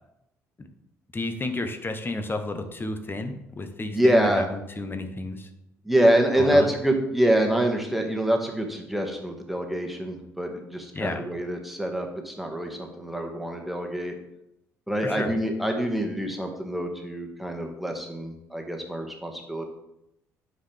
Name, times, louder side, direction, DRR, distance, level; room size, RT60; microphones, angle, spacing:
voice 1, 1.1-5.5 6.4-6.7 10.9-11.3 15.0-15.3, left 2 dB, 25° left, 7 dB, 1.3 m, -32 dB
voice 2, 3.9-4.5 5.8-14.1 14.9-19.6, right 1 dB, ahead, 2 dB, 1.9 m, -25 dB
9.4 x 5.8 x 3.5 m, 0.83 s
hypercardioid pair, 50°, 8 cm